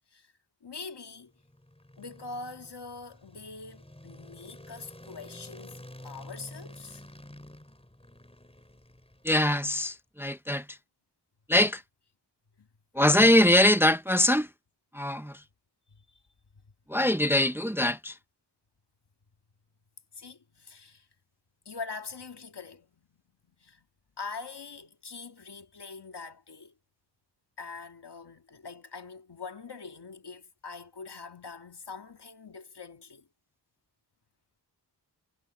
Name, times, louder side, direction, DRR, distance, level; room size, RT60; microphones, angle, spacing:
voice 1, 0.6-1.3 2.0-7.1 12.6-12.7 15.9-16.2 20.1-21.1 21.7-23.2 23.6-23.8 24.2-26.8 27.6-33.3, left 4 dB, 75° left, 2.2 m, -43 dB
sound 1, 1.2-9.6, left 1 dB, 15° left, 4.6 m, -49 dB
voice 2, 9.2-10.8 11.5-11.8 12.9-14.5 14.9-15.4 16.9-18.2, left 1 dB, 5° right, 0.7 m, -23 dB
wide cardioid pair, 50°, 41 cm